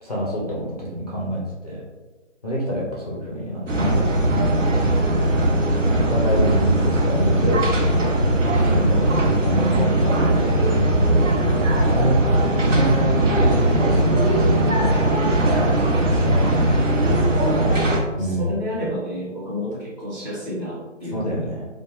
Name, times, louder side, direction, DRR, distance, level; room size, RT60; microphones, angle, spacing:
voice 1, 0.0-1.8 2.4-4.3 6.1-7.7 8.6-10.6 11.9-12.2 12.5-15.1 15.8-17.1 18.2-18.6 21.1-21.7, equal, 35° left, -5 dB, 0.4 m, -27 dB
sound 1, 3.7-18.0, right 1 dB, 75° right, 0.8 m, -19 dB
voice 2, 17.5-17.9 18.2-21.5, equal, 35° right, -7 dB, 1.0 m, -30 dB
2.7 x 2.1 x 3.0 m, 1.2 s
figure-of-eight pair, 150°, 38 cm